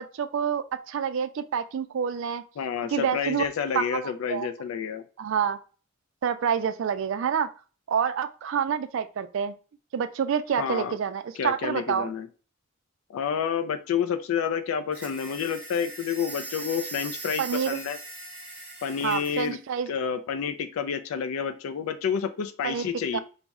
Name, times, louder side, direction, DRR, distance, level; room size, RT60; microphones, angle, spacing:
voice 1, 0.0-2.4 2.9-3.5 3.7-4.0 4.3-4.5 5.2-5.6 6.2-7.5 7.9-9.6 9.9-12.1 17.4-17.8 19.0-19.9 22.6-22.9 23.1-23.2, right 7 dB, 65° right, 11 dB, 0.3 m, -27 dB
voice 2, 2.6-5.0 10.6-11.0 11.4-12.3 13.1-18.0 18.8-19.6 19.9-23.2, left 7 dB, 85° left, 10 dB, 0.3 m, -29 dB
sound 1, 14.9-19.5, right 3 dB, 5° right, 0.8 m, -40 dB
3.9 x 2.1 x 3.5 m, 0.37 s
head